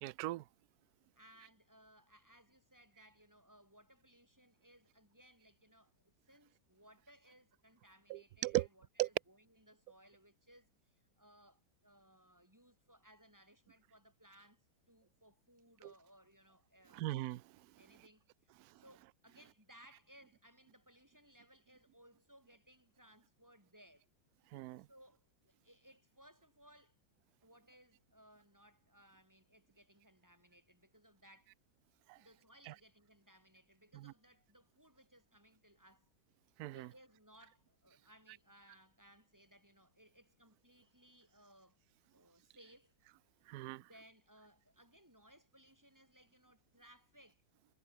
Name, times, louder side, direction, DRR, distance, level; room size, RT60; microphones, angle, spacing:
voice 1, 0.0-0.4 8.1-8.7 9.0-9.1 15.8-15.9 16.9-17.4 18.6-18.7 24.5-24.9 32.1-32.2 32.7-32.8 33.9-34.1 36.6-36.9 43.5-43.8, right 17 dB, 80° right, 0.8 m, -38 dB
voice 2, 1.1-14.6 14.9-17.1 17.8-24.1 24.9-27.0 27.4-31.6 32.2-36.1 36.7-41.8 42.1-42.9 43.8-47.4, equal, 10° right, 5.2 m, -64 dB
omnidirectional pair, 2.2 m